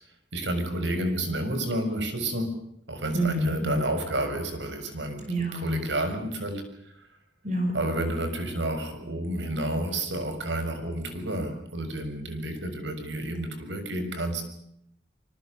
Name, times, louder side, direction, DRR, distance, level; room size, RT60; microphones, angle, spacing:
voice 1, 0.3-2.5 2.9-6.6 7.7-14.4, right 1 dB, 80° right, 8 dB, 6.6 m, -30 dB
voice 2, 3.1-3.8 5.3-5.8 7.4-7.7, equal, 40° right, 4 dB, 5.7 m, -27 dB
27.0 x 24.5 x 6.9 m, 0.73 s
head